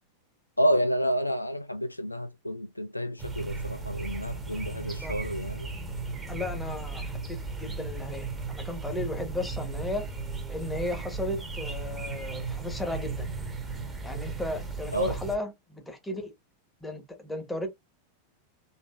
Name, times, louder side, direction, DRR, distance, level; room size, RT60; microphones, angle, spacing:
voice 1, 0.6-5.7 14.9-15.2, equal, 85° left, 0.4 m, -29 dB
sound 1, 3.2-15.4, right 4 dB, 15° right, 1.4 m, -36 dB
voice 2, 6.3-10.1 10.5-13.3 14.0-16.3 16.8-17.7, left 2 dB, 5° left, 1.4 m, -35 dB
4.0 x 3.5 x 2.6 m
figure-of-eight pair, 90°, 0 cm